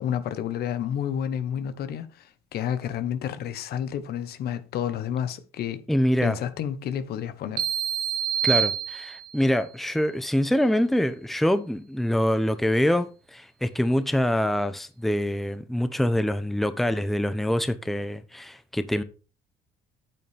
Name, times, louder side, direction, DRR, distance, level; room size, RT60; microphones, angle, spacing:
voice 1, 0.0-5.8 6.2-7.6, left 9 dB, 70° left, 1.2 m, -30 dB
voice 2, 5.9-6.4 8.4-19.0, equal, ahead, 0.8 m, -25 dB
sound 1, 7.6-9.5, right 9 dB, 65° right, 1.5 m, -27 dB
9.1 x 8.5 x 3.5 m
cardioid pair, 110°, 17 cm